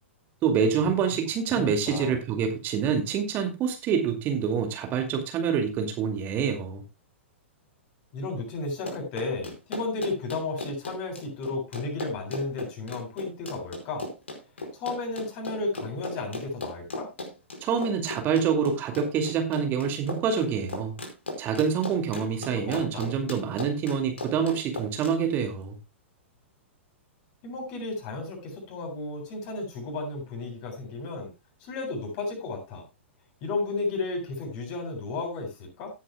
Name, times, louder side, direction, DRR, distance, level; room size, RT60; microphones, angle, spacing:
voice 1, 0.4-6.8 17.6-21.0 21.4-25.8, right 7 dB, 30° right, 2.3 m, -26 dB
voice 2, 1.5-2.2 8.1-14.1 14.7-17.1 22.5-23.1 27.4-31.3 31.6-32.8 33.4-35.9, left 3 dB, 40° left, 7.8 m, -33 dB
Run, 8.7-25.1, left 2 dB, 70° left, 4.8 m, -37 dB
17.5 x 9.9 x 2.2 m
figure-of-eight pair, 105°, 7 cm